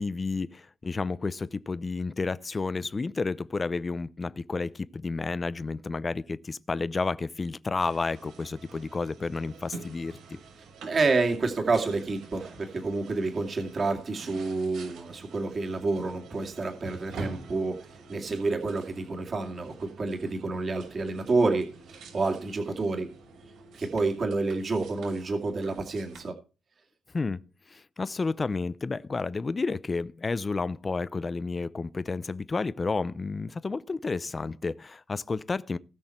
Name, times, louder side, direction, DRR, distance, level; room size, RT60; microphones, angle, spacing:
voice 1, 0.0-10.2 27.1-27.4 27.7-35.8, left 4 dB, 20° left, 0.6 m, -31 dB
sound 1, 7.8-26.2, right 3 dB, 75° right, 6.2 m, -47 dB
voice 2, 10.9-23.1 23.8-26.4, right 3 dB, 35° right, 2.3 m, -29 dB
18.5 x 6.3 x 4.4 m
cardioid pair, 145°, 0 cm